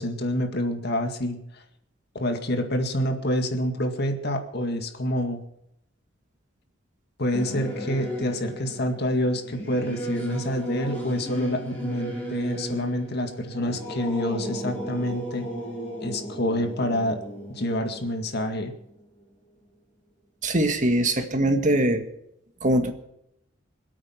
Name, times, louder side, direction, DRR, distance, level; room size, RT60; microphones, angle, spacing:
voice 1, 0.0-1.6 2.1-5.4 7.2-15.5 16.0-17.2 17.5-18.7, left 1 dB, 55° left, 5 dB, 2.0 m, -27 dB
Singing / Musical instrument, 7.3-19.2, right 1 dB, 10° left, 6.5 m, -35 dB
voice 2, 20.4-22.0 22.6-22.9, right 1 dB, 40° right, 6 dB, 1.8 m, -22 dB
25.5 x 8.7 x 5.9 m, 0.76 s
head